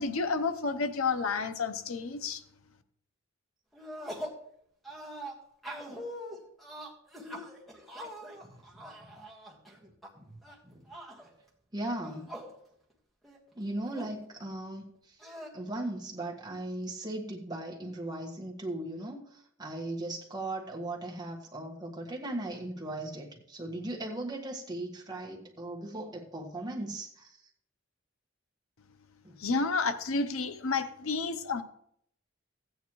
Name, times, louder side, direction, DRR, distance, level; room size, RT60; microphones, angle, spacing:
voice 1, 0.0-2.4 29.4-31.6, left 4 dB, 90° left, 10 dB, 0.8 m, -30 dB
sound 1, 3.7-4.4 4.8-10.1 10.4-11.3 11.9-12.5 12.9-13.0 13.2-14.2 15.2-15.5, equal, ahead, 1.6 m, -43 dB
voice 2, 8.4-9.2 10.2-10.4 10.6-10.9 11.7-12.3 13.5-15.2 15.5-27.4 29.2-29.4, right 1 dB, 20° right, -2 dB, 1.6 m, -38 dB
15.5 x 9.3 x 3.1 m, 0.71 s
head